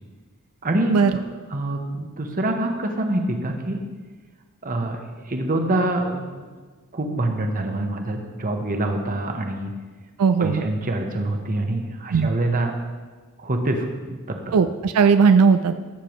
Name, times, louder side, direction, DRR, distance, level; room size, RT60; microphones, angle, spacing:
voice 1, 0.6-1.2 1.5-3.8 4.6-5.0 5.3-6.5 6.9-9.7 10.4-12.7 13.4-14.5, right 1 dB, 40° right, 4 dB, 1.0 m, -25 dB
voice 2, 10.2-10.6 12.1-12.3 14.5-15.7, right 5 dB, 90° right, 9 dB, 0.4 m, -17 dB
15.0 x 6.8 x 3.1 m, 1.4 s
head